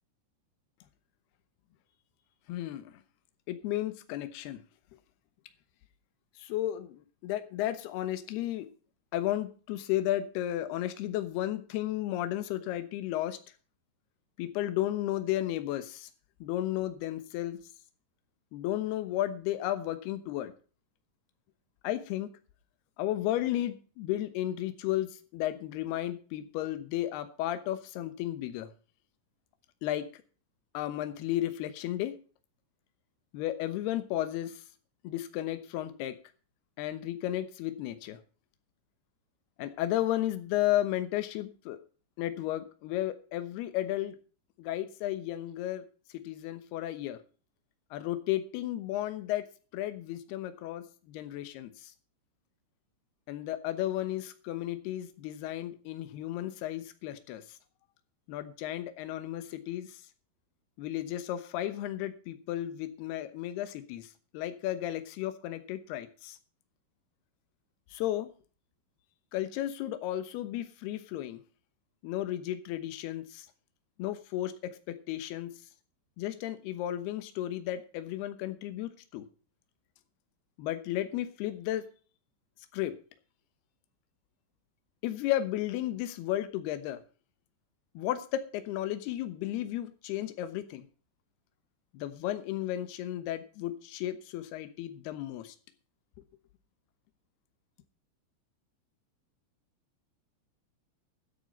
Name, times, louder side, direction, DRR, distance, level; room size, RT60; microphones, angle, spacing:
voice 1, 2.5-2.9 3.5-4.6 6.4-8.7 9.1-13.4 14.4-16.1 16.4-17.6 18.5-20.5 21.8-22.3 23.0-28.7 29.8-30.2 30.7-32.1 33.3-34.6 35.0-36.1 36.8-38.2 39.6-41.8 42.2-44.2 44.6-45.8 46.1-47.2 47.9-49.4 49.7-51.9 53.3-57.4 58.3-60.0 60.8-66.4 67.9-68.3 69.3-71.4 72.0-73.5 74.0-75.5 76.2-79.2 80.6-81.8 82.7-82.9 85.0-87.0 87.9-90.8 91.9-95.5, left 13 dB, 75° left, 10 dB, 2.9 m, -33 dB
13.0 x 8.2 x 5.4 m, 0.38 s
omnidirectional pair, 5.0 m